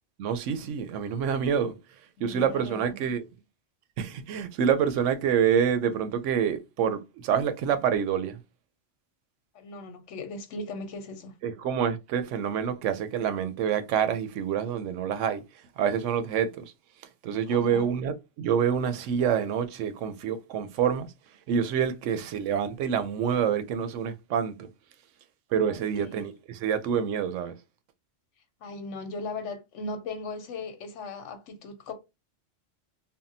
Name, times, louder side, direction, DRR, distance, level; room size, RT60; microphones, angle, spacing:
voice 1, 0.2-1.8 2.2-3.2 4.0-8.4 11.4-15.4 15.8-16.7 17.2-21.1 21.5-24.7 25.5-27.5, right 8 dB, 85° right, 0.9 m, -27 dB
voice 2, 2.2-2.8 9.5-11.3 17.3-17.9 25.7-25.8 26.1-26.2 28.6-31.9, left 3 dB, 80° left, 1.0 m, -38 dB
3.5 x 2.1 x 2.6 m
omnidirectional pair, 1.2 m